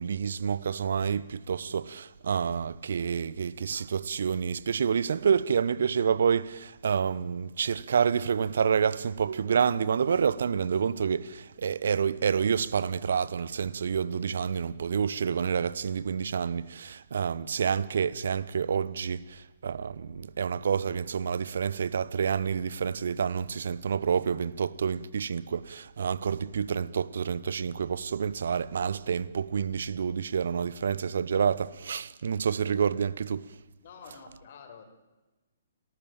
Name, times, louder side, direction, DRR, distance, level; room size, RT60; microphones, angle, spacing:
voice 1, 0.0-33.5, right 7 dB, 65° right, 0.9 m, -28 dB
voice 2, 33.8-34.8, left 6 dB, 50° left, 4.9 m, -48 dB
30.0 x 13.5 x 8.9 m
figure-of-eight pair, 125°, 0 cm